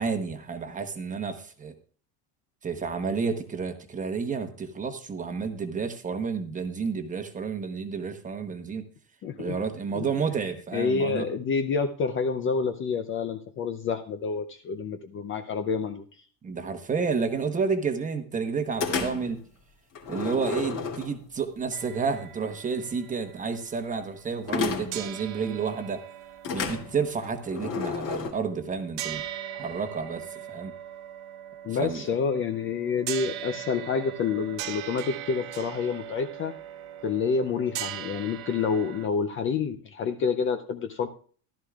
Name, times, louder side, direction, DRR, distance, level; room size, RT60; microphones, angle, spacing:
voice 1, 0.0-1.7 2.6-8.8 9.4-11.3 16.4-19.4 20.1-26.0 26.5-29.2 29.5-30.7 31.8-32.1, right 5 dB, 15° right, 7 dB, 1.0 m, -30 dB
voice 2, 9.2-9.6 9.9-10.1 10.7-16.0 31.6-36.5 37.0-41.1, left 5 dB, 30° left, 8 dB, 0.5 m, -28 dB
sound 1, 18.8-19.4 20.0-21.4 24.5-25.1 26.4-28.3, left 5 dB, 45° left, 2.7 m, -31 dB
sound 2, 21.7-24.6 24.9-39.1, right 11 dB, 70° right, 1.1 m, -40 dB
15.0 x 12.5 x 2.4 m, 0.42 s
cardioid pair, 165°, 44 cm